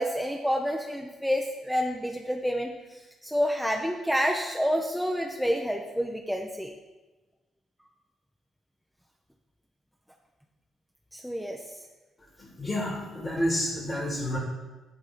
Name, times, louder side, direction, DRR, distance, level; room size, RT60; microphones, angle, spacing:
voice 1, 0.0-6.7 11.1-11.7, equal, ahead, 1 dB, 0.6 m, -29 dB
voice 2, 12.4-14.4, left 1 dB, 35° left, -3 dB, 2.0 m, -29 dB
9.7 x 3.8 x 4.1 m, 1.2 s
figure-of-eight pair, 40°, 0 cm